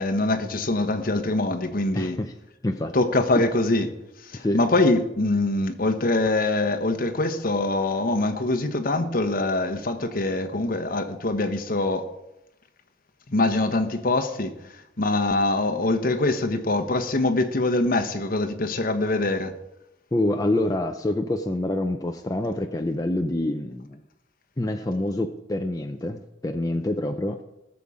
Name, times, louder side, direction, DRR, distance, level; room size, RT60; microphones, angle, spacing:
voice 1, 0.0-2.2 2.9-3.9 4.3-12.1 13.3-14.6 15.0-19.5, left 2 dB, 50° left, 1.0 m, -24 dB
voice 2, 1.9-2.3 2.6-3.0 4.3-4.7 20.1-24.0 24.6-27.4, left 1 dB, 20° left, 0.5 m, -26 dB
18.5 x 7.1 x 4.9 m
head